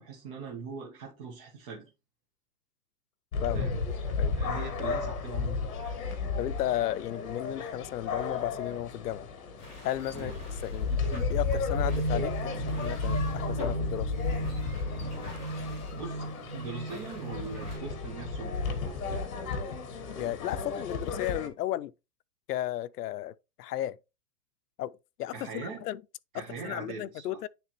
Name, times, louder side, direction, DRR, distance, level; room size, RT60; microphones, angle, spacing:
voice 1, 0.0-1.9 3.5-3.8 4.3-5.7 10.1-10.3 16.0-19.2 25.3-25.8 26.3-27.4, right 4 dB, 20° right, 1.0 m, -41 dB
sound 1, 3.3-21.5, left 4 dB, 60° left, 1.5 m, -33 dB
voice 2, 6.4-9.3 9.8-10.3 10.6-11.0 11.3-14.1 20.2-21.9 22.5-24.0 24.8-26.0 26.3-27.5, left 13 dB, 80° left, 0.6 m, -34 dB
sound 2, 9.6-17.8, left 2 dB, 15° left, 2.4 m, -45 dB
sound 3, 11.1-18.8, right 3 dB, 45° right, 0.7 m, -37 dB
10.0 x 3.4 x 3.0 m
hypercardioid pair, 175°, 46 cm